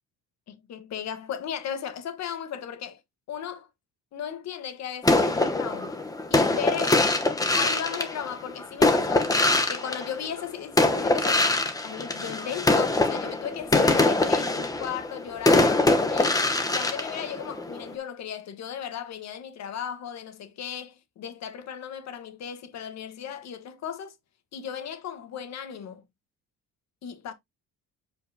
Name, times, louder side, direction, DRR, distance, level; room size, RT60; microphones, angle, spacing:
voice 1, 0.5-3.0 3.3-3.7 4.1-6.0 6.3-7.1 7.5-9.3 9.7-11.5 11.8-16.4 16.7-24.1 24.5-26.0 27.0-27.3, left 8 dB, 60° left, 1.4 m, -36 dB
sound 1, 5.0-10.4 10.8-17.9, left 2 dB, 10° left, 0.9 m, -23 dB
7.6 x 4.7 x 2.8 m
cardioid pair, 145°, 30 cm